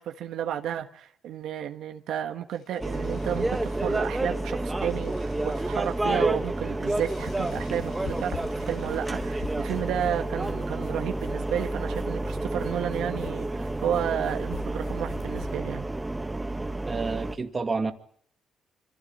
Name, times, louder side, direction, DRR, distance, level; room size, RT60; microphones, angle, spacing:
voice 1, 0.0-15.9, right 10 dB, 80° right, 1.5 m, -32 dB
sound 1, 2.5-10.2, left 5 dB, 65° left, 5.3 m, -57 dB
sound 2, 2.8-17.4, right 2 dB, 15° right, 1.6 m, -30 dB
sound 3, 6.9-15.5, left 8 dB, 85° left, 6.6 m, -45 dB
voice 2, 16.9-17.9, right 4 dB, 30° right, 2.3 m, -29 dB
25.0 x 16.0 x 9.0 m
cardioid pair, 90°, 0 cm